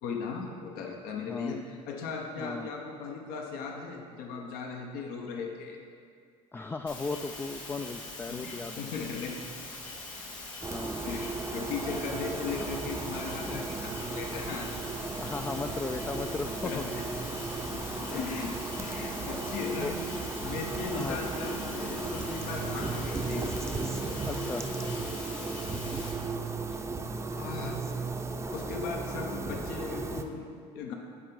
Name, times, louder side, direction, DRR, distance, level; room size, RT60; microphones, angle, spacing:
voice 1, 0.0-5.8 8.3-9.4 11.0-14.8 16.6-17.0 17.7-19.9 20.4-23.5 24.9-25.2 26.7-26.8 27.4-27.8 28.5-30.9, left 5 dB, 65° left, 2 dB, 1.0 m, -37 dB
voice 2, 1.3-1.6 2.4-2.7 6.5-8.9 10.7-11.1 12.6-12.7 13.4-13.6 15.2-16.8 18.0-18.3 19.7-19.9 20.9-21.2 24.3-24.7, left 3 dB, 15° left, 7 dB, 0.3 m, -36 dB
sound 1, 6.9-26.1, left 2 dB, 90° left, 1.6 m, -43 dB
sound 2, 10.6-30.2, right 3 dB, 15° right, 0.7 m, -35 dB
sound 3, 12.1-21.5, right 6 dB, 50° right, 0.9 m, -48 dB
10.5 x 4.7 x 5.4 m, 2.2 s
hypercardioid pair, 75°, 16 cm